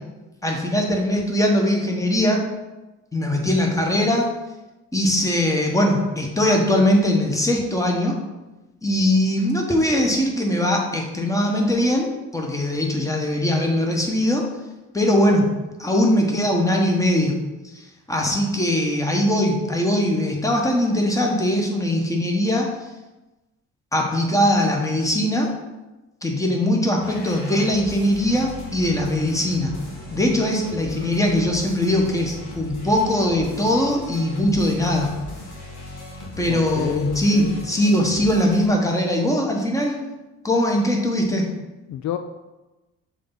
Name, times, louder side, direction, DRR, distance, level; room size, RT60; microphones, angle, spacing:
voice 1, 0.4-2.5 3.1-4.3 4.9-8.2 8.8-14.5 14.9-17.4 18.1-22.7 23.9-25.5 26.2-29.7 30.1-35.1 36.4-40.0 40.4-41.5, left 1 dB, 10° left, 0 dB, 1.3 m, -21 dB
sound 1, 27.0-38.7, left 1 dB, 85° left, 1.9 m, -38 dB
voice 2, 36.4-37.6 41.9-42.2, left 11 dB, 65° left, 8 dB, 0.4 m, -30 dB
6.6 x 4.0 x 3.9 m, 1.1 s
cardioid pair, 90°, 30 cm